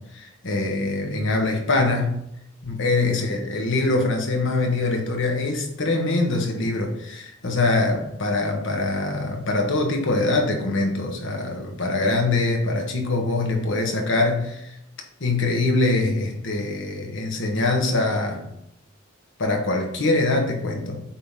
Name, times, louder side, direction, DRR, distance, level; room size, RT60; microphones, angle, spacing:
voice 1, 0.1-2.2 2.6-14.8 15.2-18.4 19.4-21.0, left 2 dB, 65° left, 2 dB, 1.4 m, -23 dB
8.5 x 3.9 x 3.7 m, 0.78 s
head